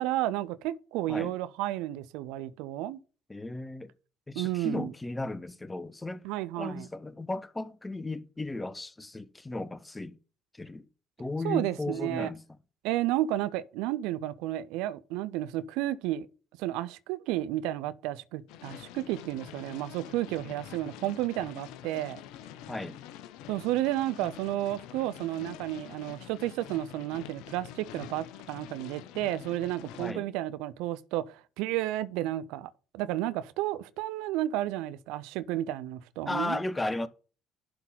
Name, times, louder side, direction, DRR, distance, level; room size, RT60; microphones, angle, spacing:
voice 1, 0.0-3.0 4.4-4.9 6.2-6.9 11.4-12.3 12.8-16.3 16.6-22.2 23.5-36.6, right 14 dB, 75° right, 0.5 m, -32 dB
voice 2, 3.3-3.9 4.3-6.2 6.6-10.2 10.5-10.8 11.2-12.4 22.7-23.0 30.0-30.3 36.3-37.1, left 2 dB, 20° left, 1.0 m, -35 dB
sound 1, 18.5-30.1, left 11 dB, 70° left, 0.6 m, -46 dB
11.5 x 3.9 x 5.6 m
hypercardioid pair, 50°, 0 cm